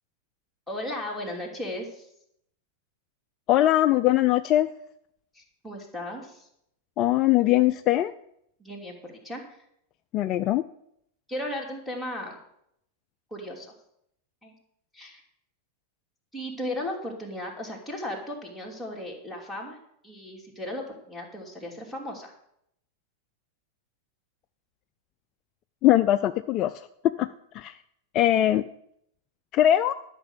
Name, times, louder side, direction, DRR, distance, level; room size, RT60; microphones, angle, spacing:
voice 1, 0.7-2.1 5.3-6.5 8.6-9.4 11.3-12.4 13.3-13.7 14.4-14.5 14.9-15.2 16.3-19.8 20.0-22.3, left 1 dB, ahead, -3 dB, 3.0 m, -36 dB
voice 2, 3.5-4.7 7.0-8.1 10.1-10.6 25.8-26.9 27.2-27.3 27.5-27.8 28.1-28.6 29.5-29.9, left 13 dB, 35° left, 12 dB, 0.4 m, -21 dB
12.0 x 6.0 x 8.1 m, 0.75 s
figure-of-eight pair, 90°, 0 cm